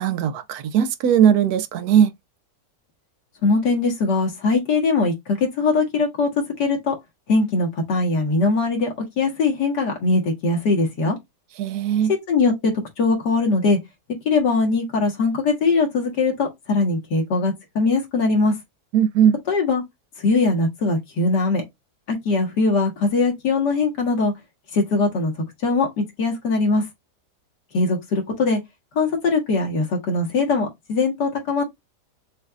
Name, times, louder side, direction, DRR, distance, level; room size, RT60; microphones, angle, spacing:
voice 1, 0.0-2.1 11.6-12.1 18.9-19.4, right 9 dB, 70° right, 1.0 m, -18 dB
voice 2, 3.4-6.9 7.3-11.2 12.3-12.7 13.0-13.8 14.3-18.5 19.5-19.8 20.2-21.6 22.1-24.3 24.7-25.3 25.6-26.8 27.7-28.6 29.0-31.6, left 3 dB, 75° left, 2.2 m, -21 dB
6.2 x 2.6 x 2.3 m
omnidirectional pair, 1.9 m